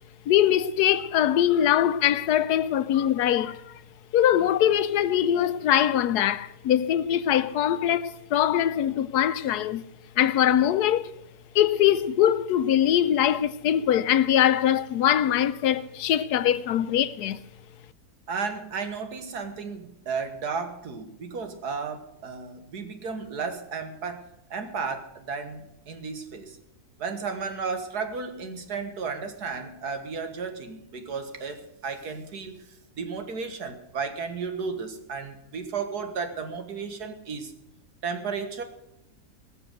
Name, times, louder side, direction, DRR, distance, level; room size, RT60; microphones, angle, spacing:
voice 1, 0.3-3.8 4.1-9.8 10.2-11.1 11.5-17.4, left 11 dB, 85° left, 1.2 m, -22 dB
voice 2, 18.3-26.6 27.0-32.6 33.0-37.5 38.0-38.6, right 5 dB, 85° right, 2.1 m, -33 dB
18.5 x 6.9 x 7.9 m
omnidirectional pair, 1.7 m